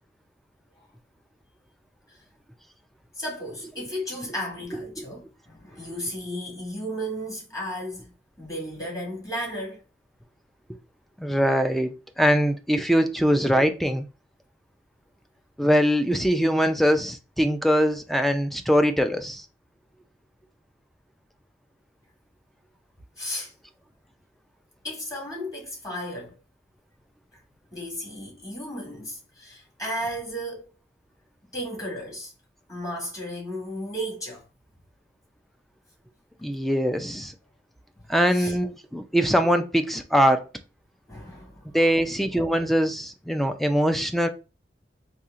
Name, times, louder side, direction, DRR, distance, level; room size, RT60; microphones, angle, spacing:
voice 1, 3.2-8.1 8.4-9.8 23.2-23.5 24.8-26.3 27.3-27.4 27.7-30.7 31.5-32.3 32.7-34.5 38.3-38.6 41.1-41.9, equal, 20° left, 1.8 m, -34 dB
voice 2, 11.2-14.1 15.6-19.4 36.4-37.3 38.1-40.5 41.7-44.3, equal, ahead, 0.4 m, -22 dB
4.2 x 2.7 x 2.5 m
head